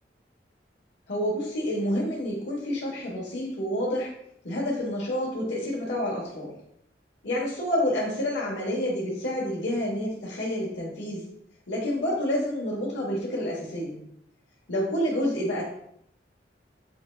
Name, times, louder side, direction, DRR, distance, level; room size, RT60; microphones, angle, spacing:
voice 1, 1.1-4.1 4.4-6.5 7.2-11.2 11.7-14.0 14.7-15.6, equal, 90° left, -4 dB, 1.2 m, -28 dB
5.7 x 3.2 x 2.3 m, 0.73 s
head